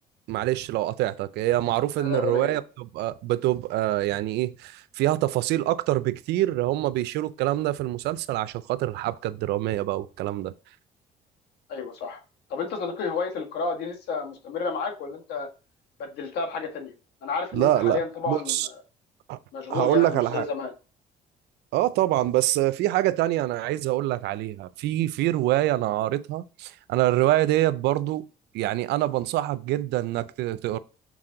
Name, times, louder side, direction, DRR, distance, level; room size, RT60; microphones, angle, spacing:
voice 1, 0.3-10.5 17.5-18.7 19.3-19.4 19.7-20.4 21.7-28.3 28.5-30.8, right 15 dB, 80° right, 0.5 m, -25 dB
voice 2, 2.0-2.6 11.7-12.2 12.5-15.5 16.0-16.9 17.2-18.8 19.5-20.7, left 5 dB, 75° left, 1.6 m, -31 dB
6.2 x 4.1 x 3.8 m
cardioid pair, 110°, 17 cm